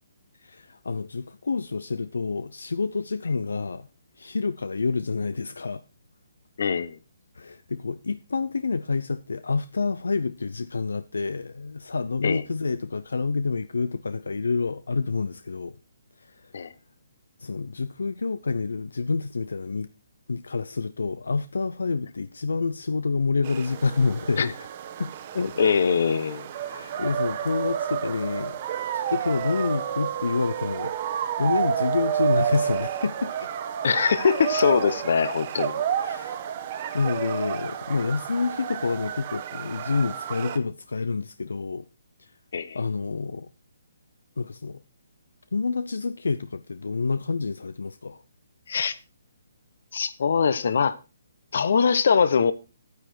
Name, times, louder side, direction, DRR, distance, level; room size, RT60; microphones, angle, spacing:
voice 1, 0.4-3.9 4.2-5.8 6.7-6.8 7.3-15.8 16.2-16.5 17.4-19.9 20.3-24.7 25.0-25.1 26.6-28.6 28.9-30.9 31.4-33.5 36.0-36.4 36.9-41.8 42.2-42.3 42.7-43.5 44.4-44.8 45.5-48.2, left 4 dB, 85° left, 0.5 m, -28 dB
voice 2, 6.6-7.0 12.2-12.4 16.5-16.7 24.4-24.5 25.4-26.5 33.8-35.8 42.5-42.8 48.7-48.9 49.9-51.0 51.5-52.5, left 6 dB, 65° left, 1.0 m, -22 dB
sound 1, 23.4-40.6, right 9 dB, 40° right, 1.1 m, -30 dB
9.6 x 9.5 x 4.4 m
hypercardioid pair, 150°, 0 cm